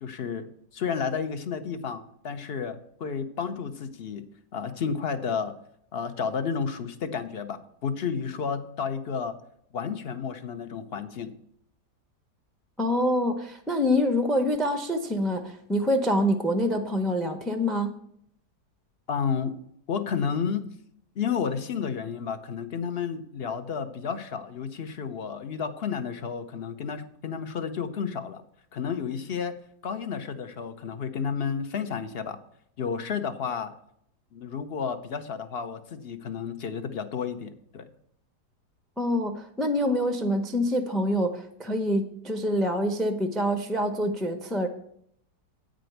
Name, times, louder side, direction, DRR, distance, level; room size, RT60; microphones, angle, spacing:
voice 1, 0.0-0.5 0.7-4.2 4.5-5.5 5.9-9.4 9.7-11.3 19.1-19.6 19.9-20.7 21.2-28.4 28.7-29.5 29.8-32.4 32.8-33.7 34.3-37.9, left 6 dB, 50° left, 10 dB, 0.7 m, -31 dB
voice 2, 12.8-17.9 39.0-44.7, equal, ahead, 7 dB, 0.3 m, -26 dB
8.8 x 5.2 x 7.9 m, 0.69 s
omnidirectional pair, 1.8 m